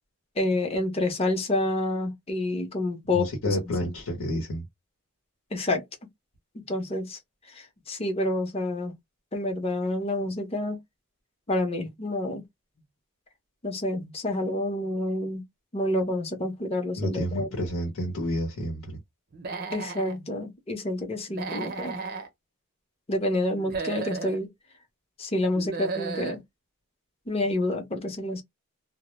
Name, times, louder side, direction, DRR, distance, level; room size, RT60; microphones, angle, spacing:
voice 1, 0.4-3.6 5.5-5.8 6.5-7.2 7.5-8.9 9.3-10.8 11.5-12.4 13.6-15.4 15.7-17.5 19.7-22.0 23.1-24.5 25.2-26.4 27.3-28.4, left 1 dB, 25° left, 0.6 m, -28 dB
voice 2, 3.1-4.6 17.0-19.0, equal, 75° left, 0.8 m, -29 dB
Human voice / Animal, 19.3-20.2 21.3-22.3 23.5-24.4 25.5-26.4, right 4 dB, 45° right, 0.5 m, -34 dB
2.1 x 2.0 x 3.0 m
head